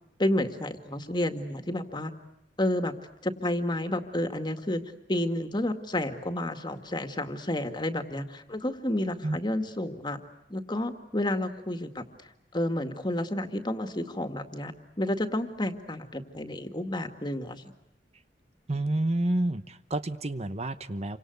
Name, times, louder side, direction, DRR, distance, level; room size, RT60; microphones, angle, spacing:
voice 1, 0.2-2.1 2.6-2.9 3.2-4.8 5.1-10.2 10.5-12.0 12.5-17.7, left 1 dB, 25° left, 7 dB, 2.1 m, -30 dB
voice 2, 18.7-21.2, right 1 dB, 40° right, 11 dB, 1.0 m, -29 dB
29.0 x 25.5 x 8.1 m, 0.83 s
head